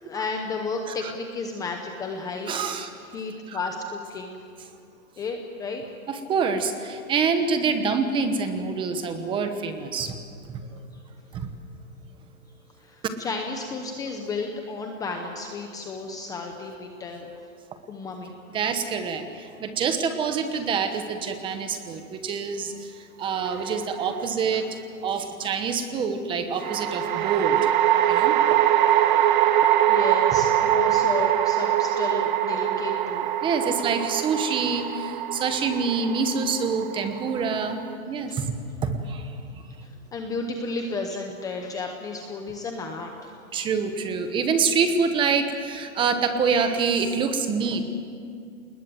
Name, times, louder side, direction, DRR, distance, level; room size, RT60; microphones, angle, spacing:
voice 1, 0.0-2.5 3.1-4.4 5.2-5.8 12.8-17.3 17.9-18.3 24.5-24.6 29.9-33.3 39.8-43.3, left 3 dB, 10° left, 3 dB, 0.8 m, -33 dB
voice 2, 2.5-2.9 3.5-3.6 6.1-10.2 11.3-11.5 18.5-22.7 23.2-24.7 25.0-27.6 28.0-28.4 33.4-37.8 38.1-38.4 38.8-39.2 43.5-47.8, right 5 dB, 10° right, 8 dB, 1.1 m, -26 dB
sound 1, 23.5-24.2 26.6-37.9, right 11 dB, 35° right, 0.8 m, -23 dB
28.5 x 20.5 x 7.8 m, 2.4 s
hypercardioid pair, 165°, 41 cm